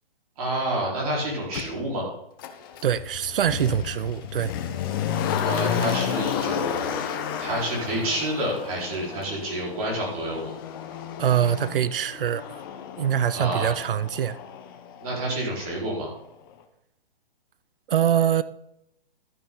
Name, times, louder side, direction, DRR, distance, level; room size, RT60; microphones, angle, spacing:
voice 1, 0.4-2.1 5.4-7.0 7.4-10.6 13.3-13.7 15.0-16.1, right 1 dB, 35° right, 4.4 m, -29 dB
Motor vehicle (road), 1.5-1.7 2.4-15.3 15.6-15.7, left 8 dB, 20° left, 0.7 m, -31 dB
voice 2, 2.8-4.5 11.2-12.6 13.0-14.4 17.9-18.4, right 9 dB, 65° right, 0.6 m, -24 dB
12.0 x 9.7 x 3.8 m
hypercardioid pair, 165°, 30 cm